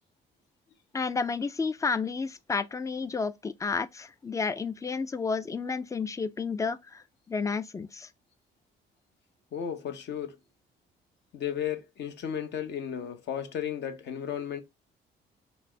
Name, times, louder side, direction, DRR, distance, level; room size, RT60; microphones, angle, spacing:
voice 1, 0.9-8.1, left 4 dB, 15° left, 0.3 m, -31 dB
voice 2, 9.5-10.4 11.3-14.6, left 9 dB, 60° left, 0.8 m, -34 dB
4.1 x 2.0 x 3.2 m
cardioid pair, 90°, 20 cm